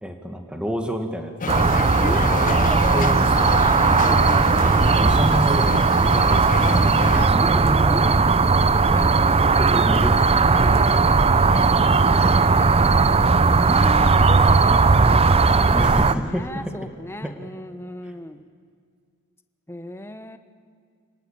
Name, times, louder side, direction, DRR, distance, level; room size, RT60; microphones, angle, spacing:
voice 1, 0.0-1.6 2.9-4.2 4.6-6.6 8.0-8.3 8.7-9.1 9.6-11.1 15.5-16.8 17.2-17.3, equal, 5° right, 4 dB, 1.8 m, -30 dB
sound 1, 1.4-7.3, left 5 dB, 35° left, 0.6 m, -29 dB
sound 2, 1.5-16.1, right 4 dB, 25° right, 0.6 m, -17 dB
voice 2, 2.0-5.1 7.2-8.1 8.9-9.8 11.5-12.3 13.5-18.4 19.7-20.4, left 1 dB, 10° left, 9 dB, 1.2 m, -36 dB
29.0 x 19.5 x 8.9 m, 2.1 s
head